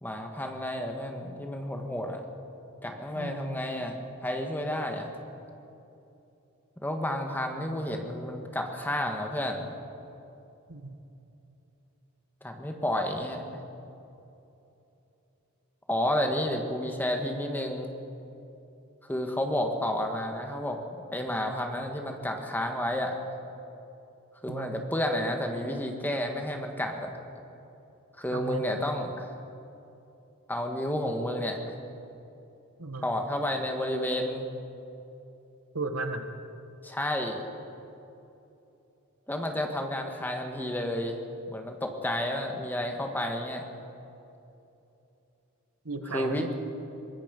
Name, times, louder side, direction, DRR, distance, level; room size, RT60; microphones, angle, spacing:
voice 1, 0.0-2.2 2.8-5.1 6.8-9.7 12.4-13.6 15.9-17.9 19.1-20.8 21.1-23.2 24.4-27.1 28.2-29.3 30.5-31.8 33.0-34.5 36.8-37.7 39.3-41.2 41.5-43.6 46.1-46.5, left 1 dB, 10° left, 3 dB, 1.6 m, -31 dB
voice 2, 3.1-3.6 10.7-11.0 24.5-24.8 28.3-28.6 32.8-33.1 35.7-36.3 45.8-46.5, right 3 dB, 80° right, 7 dB, 1.6 m, -35 dB
23.5 x 20.5 x 5.4 m, 2.9 s
head